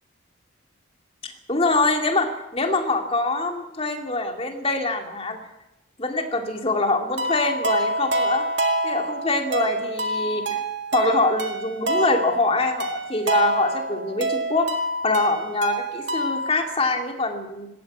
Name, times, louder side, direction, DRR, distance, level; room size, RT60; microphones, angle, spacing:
voice 1, 1.2-5.4 6.0-8.4 8.8-10.6 10.9-14.7 15.0-17.7, left 2 dB, 30° left, 4 dB, 2.6 m, -24 dB
sound 1, 7.2-16.6, right 1 dB, 60° right, 2.1 m, -27 dB
19.5 x 16.5 x 8.5 m, 0.97 s
head